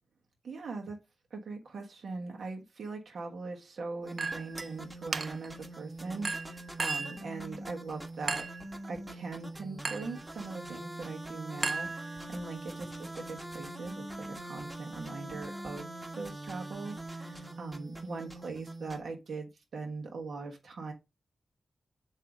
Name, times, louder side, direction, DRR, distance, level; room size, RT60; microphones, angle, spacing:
voice 1, 0.4-1.0 1.3-8.4 8.9-20.9, right 3 dB, 75° right, 1.2 m, -41 dB
sound 1, 4.0-19.0, right 1 dB, 20° right, 1.3 m, -43 dB
Chink clink, 4.2-4.7 5.1-5.6 6.2-7.2 8.3-8.7 9.8-10.2 11.6-12.4, right 4 dB, 45° right, 0.4 m, -35 dB
7.6 x 2.8 x 4.9 m
wide cardioid pair, 130°, 0 cm